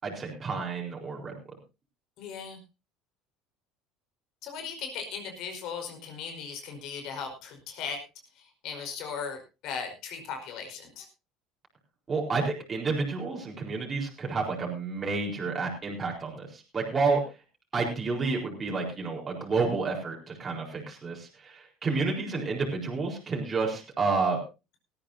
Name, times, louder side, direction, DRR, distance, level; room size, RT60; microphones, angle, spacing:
voice 1, 0.0-1.3 12.1-17.2 17.7-24.4, right 4 dB, 25° right, -1 dB, 4.3 m, -30 dB
voice 2, 2.2-2.6 4.4-8.0 8.4-11.0, left 6 dB, 60° left, 5 dB, 4.9 m, -38 dB
18.5 x 14.0 x 2.8 m, 0.28 s
cardioid pair, 130°, 0 cm